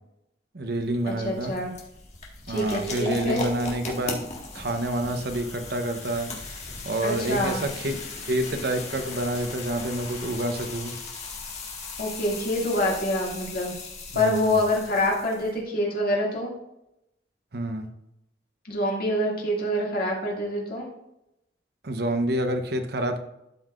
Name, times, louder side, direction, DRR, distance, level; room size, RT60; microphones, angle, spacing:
voice 1, 0.5-1.6 2.5-4.3 4.5-6.5 6.8-8.0 8.3-10.9 14.1-14.6 17.5-17.9 21.8-23.2, right 1 dB, 65° right, 7 dB, 0.9 m, -28 dB
sound 1, 0.7-15.6, left 3 dB, 40° left, 1.8 m, -38 dB
voice 2, 1.2-1.7 2.5-3.4 7.0-7.6 12.0-13.7 14.1-16.5 18.7-20.9, left 1 dB, 55° left, -3 dB, 2.3 m, -26 dB
12.5 x 5.6 x 2.5 m, 0.85 s
head